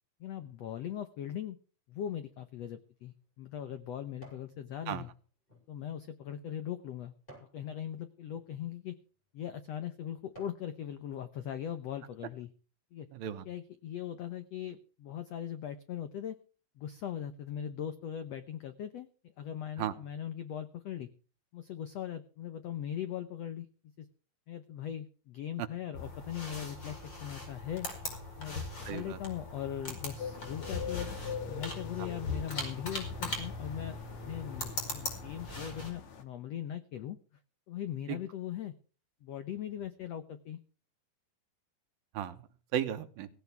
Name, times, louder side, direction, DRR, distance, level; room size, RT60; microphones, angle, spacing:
voice 1, 0.2-1.6 1.9-5.1 5.7-7.1 7.5-8.9 9.3-12.5 12.9-13.1 13.5-16.4 16.8-19.1 19.4-21.1 21.5-23.7 24.0-24.1 24.5-27.9 28.4-31.1 31.4-34.0 34.2-37.2 37.7-38.7 39.2-40.6, left 10 dB, 80° left, 10 dB, 1.4 m, -40 dB
sound 1, 2.7-4.5 5.0-7.6 8.2-8.5 9.2-9.3 9.8-10.7 11.2-11.3, right 2 dB, 15° left, 7.3 m, -58 dB
voice 2, 13.1-13.4 19.8-19.9 25.6-25.7 28.9-29.2 32.0-32.1 38.1-38.2 42.1-42.5 42.7-43.3, right 10 dB, 75° right, 9 dB, 2.8 m, -35 dB
sound 2, 25.9-35.9, left 2 dB, 30° left, 5.3 m, -40 dB
sound 3, 30.2-36.2, left 7 dB, 55° left, 2.8 m, -43 dB
17.0 x 16.5 x 3.4 m, 0.38 s
omnidirectional pair, 4.3 m